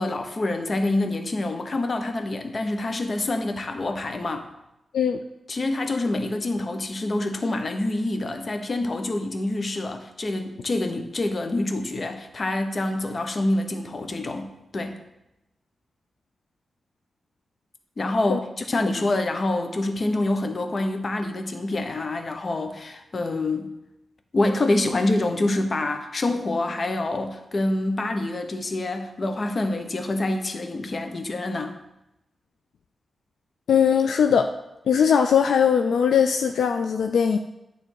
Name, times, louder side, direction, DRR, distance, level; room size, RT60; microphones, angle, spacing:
voice 1, 0.0-4.5 5.5-15.0 18.0-23.7 24.3-31.7, left 2 dB, 50° left, 6 dB, 1.0 m, -26 dB
voice 2, 33.7-34.5 34.9-37.4, left 7 dB, 85° left, 6 dB, 0.3 m, -20 dB
9.1 x 3.5 x 6.3 m, 0.92 s
cardioid pair, 60°, 0 cm